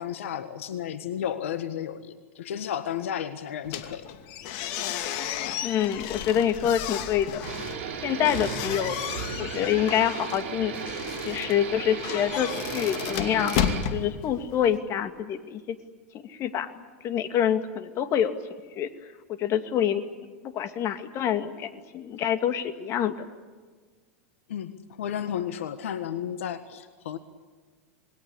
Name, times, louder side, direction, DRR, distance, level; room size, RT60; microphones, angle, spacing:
voice 1, 0.0-4.1 24.5-27.2, left 9 dB, 75° left, 11 dB, 1.6 m, -33 dB
sound 1, 3.6-14.8, left 9 dB, 55° left, 2.6 m, -33 dB
voice 2, 5.6-7.4 8.0-9.0 9.4-10.9 11.2-15.8 16.3-16.7 17.0-18.4 18.8-18.9 19.4-20.0 20.4-23.1, left 9 dB, 40° left, 9 dB, 2.5 m, -26 dB
sound 2, 7.4-13.8, right 6 dB, 65° right, 5.1 m, -35 dB
28.0 x 21.0 x 8.6 m, 1.4 s
hypercardioid pair, 100°, 7 cm